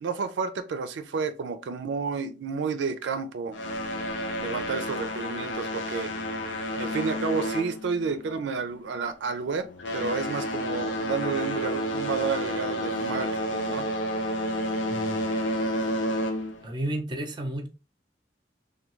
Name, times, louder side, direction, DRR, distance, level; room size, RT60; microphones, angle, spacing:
voice 1, 0.0-3.6 4.4-6.1 6.8-9.7 9.9-13.9, right 4 dB, 80° right, 0.4 m, -30 dB
sound 1, 3.5-8.4 8.7-9.0 9.6-16.7, equal, 90° left, 0.6 m, -30 dB
voice 2, 14.9-15.2 16.6-17.7, right 1 dB, 25° right, 0.6 m, -32 dB
3.4 x 2.2 x 3.0 m
head